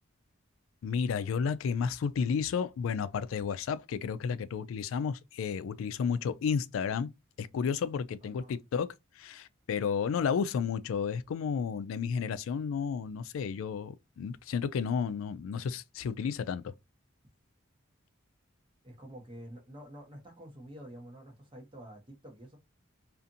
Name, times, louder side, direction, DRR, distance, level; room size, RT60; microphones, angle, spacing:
voice 1, 0.8-7.1 7.4-8.9 9.2-16.7, left 6 dB, 75° left, 0.3 m, -32 dB
voice 2, 8.2-8.6 18.8-22.6, equal, 25° right, 1.0 m, -48 dB
2.5 x 2.5 x 2.6 m
head